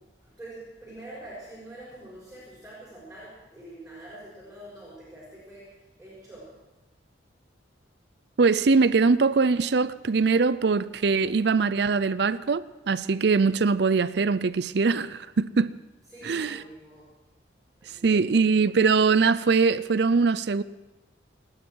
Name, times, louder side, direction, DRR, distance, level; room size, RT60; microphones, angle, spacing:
voice 1, 0.0-6.6 11.1-11.6 16.1-17.1 17.8-18.2, right 1 dB, 5° right, 6.0 m, -45 dB
voice 2, 8.4-15.7 16.2-16.6 18.0-20.6, right 4 dB, 60° right, 0.5 m, -22 dB
29.5 x 9.9 x 4.6 m
head